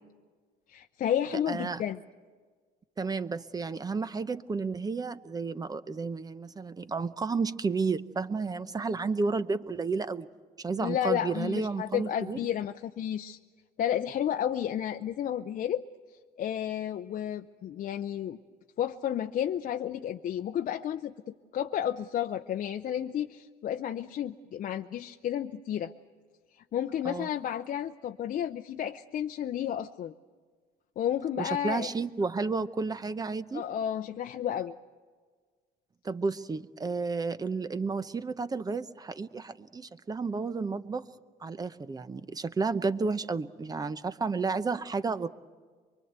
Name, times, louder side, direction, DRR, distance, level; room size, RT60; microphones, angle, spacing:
voice 1, 0.7-2.0 10.8-13.4 13.8-15.8 16.4-18.4 18.8-25.9 26.5-30.1 31.0-31.9 33.5-34.8, left 10 dB, 50° left, 6 dB, 0.7 m, -32 dB
voice 2, 1.5-1.8 3.0-10.3 10.6-12.4 27.0-27.3 31.4-33.6 36.0-41.1 41.4-45.3, right 4 dB, 20° right, 13 dB, 0.9 m, -32 dB
24.0 x 23.5 x 8.1 m, 1.6 s
cardioid pair, 110°, 17 cm